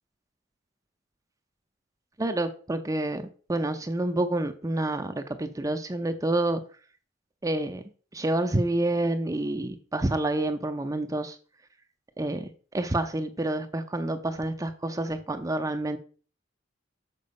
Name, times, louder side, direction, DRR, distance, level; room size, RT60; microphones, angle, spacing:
voice 1, 2.2-6.6 7.4-7.8 8.1-11.4 12.2-16.0, right 1 dB, 20° right, 0.6 m, -28 dB
6.8 x 4.6 x 5.3 m
head